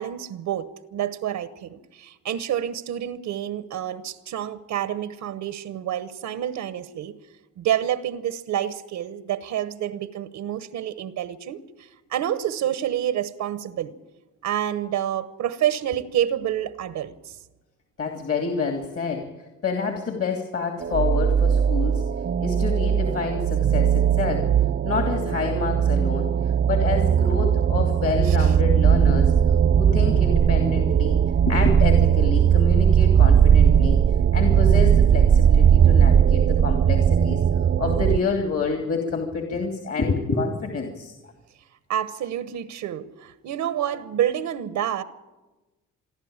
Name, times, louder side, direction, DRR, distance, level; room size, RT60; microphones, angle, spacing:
voice 1, 0.0-7.2 7.6-13.9 14.4-17.4 28.2-28.6 41.9-45.0, right 11 dB, 80° right, 13 dB, 1.0 m, -28 dB
voice 2, 18.0-19.3 19.6-22.1 22.4-24.5 24.8-26.3 26.6-29.3 29.8-31.2 31.4-34.0 34.3-37.4 37.8-41.2, left 4 dB, 50° left, 4 dB, 2.8 m, -28 dB
sound 1, 20.8-38.2, right 8 dB, 40° right, 0.7 m, -19 dB
27.5 x 11.5 x 8.8 m, 1.1 s
cardioid pair, 90°, 30 cm